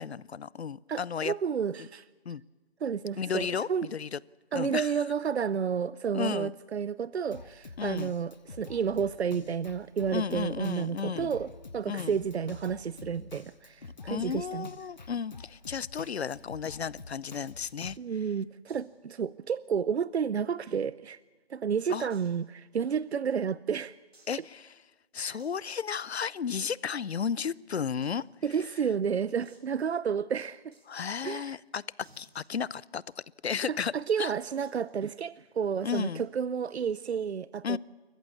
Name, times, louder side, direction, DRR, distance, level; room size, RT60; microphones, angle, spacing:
voice 1, 0.0-1.3 1.8-1.9 2.3-2.4 3.2-4.2 4.5-5.0 6.1-6.5 7.8-8.1 10.1-11.3 11.9-12.2 14.1-18.0 21.9-22.1 24.3-24.7 25.1-28.3 30.9-31.8 32.2-33.9 34.2-34.3 35.8-36.2 37.6-37.8, left 7 dB, 80° left, 23 dB, 0.7 m, -33 dB
voice 2, 0.9-2.1 2.8-3.9 4.5-11.5 11.7-14.7 18.0-21.2 21.5-24.0 25.2-25.4 28.4-30.7 31.2-31.6 33.7-37.8, right 7 dB, 90° right, 18 dB, 0.6 m, -31 dB
Drum kit, 7.3-18.0, left 3 dB, 45° left, 0.9 m, -47 dB
sound 1, 17.6-17.9 18.7-19.0 19.2-19.3 19.7-19.8 20.5-21.2 22.1-22.5 23.0-23.1 24.1-24.6 25.4-25.6 26.6-27.1 28.0-28.1 28.4-28.5 28.8-28.9 29.4-29.7 30.7-31.1 32.0-33.1 34.6-34.9 35.9-36.3, right 2 dB, 70° right, 4.5 m, -61 dB
26.5 x 14.5 x 8.5 m, 1.3 s
hypercardioid pair, 180°, 32 cm